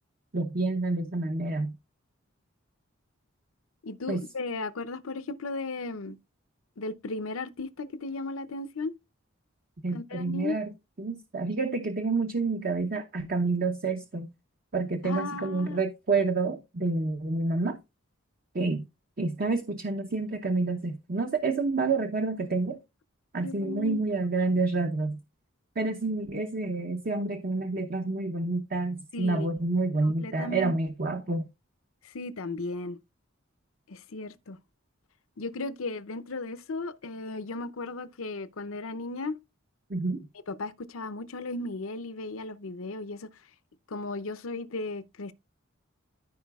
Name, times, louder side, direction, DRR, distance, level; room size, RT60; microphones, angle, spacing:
voice 1, 0.3-1.7 4.1-4.2 9.8-10.7 11.0-14.3 14.7-17.8 18.5-18.8 19.2-22.8 23.3-25.2 25.8-31.5 39.9-40.3, right 3 dB, 45° right, 0.8 m, -28 dB
voice 2, 3.8-6.2 6.8-8.9 9.9-10.6 15.0-15.8 23.4-24.0 29.1-29.5 30.0-30.7 32.0-33.0 33.9-34.6 35.4-39.4 40.5-43.3 43.9-45.3, left 3 dB, 80° left, 0.7 m, -35 dB
14.5 x 4.9 x 2.4 m
head